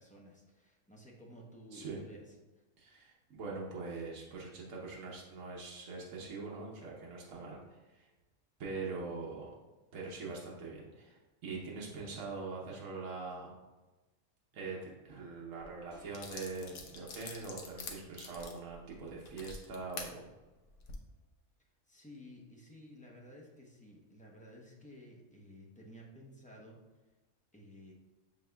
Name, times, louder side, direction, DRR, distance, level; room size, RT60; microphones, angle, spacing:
voice 1, 0.0-2.2 21.9-26.8 27.5-27.9, equal, 10° left, -3 dB, 0.4 m, -54 dB
voice 2, 2.8-8.1 8.6-9.5 9.9-13.5 14.5-20.3, right 4 dB, 75° right, -3 dB, 1.2 m, -43 dB
sound 1, 15.6-15.7 16.1-20.1 20.7-21.0, left 4 dB, 70° left, 1.0 m, -46 dB
sound 2, 15.9-21.4, right 4 dB, 55° right, 1.2 m, -65 dB
6.5 x 3.7 x 2.2 m, 1.2 s
omnidirectional pair, 1.4 m